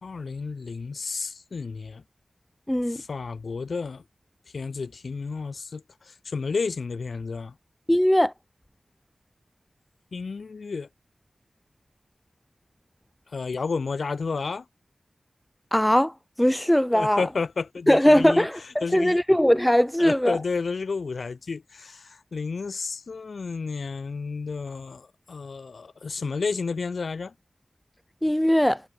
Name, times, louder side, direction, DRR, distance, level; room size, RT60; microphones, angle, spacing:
voice 1, 0.0-2.0 2.9-4.0 4.5-7.5 10.1-10.9 13.3-14.6 16.9-18.5 18.8-19.2 20.0-27.3, left 4 dB, 75° left, 3.0 m, -31 dB
voice 2, 2.7-3.0 7.9-8.3 15.7-17.3 17.9-20.4 28.2-28.8, equal, 5° left, 1.6 m, -20 dB
wide cardioid pair, 95°, 0 cm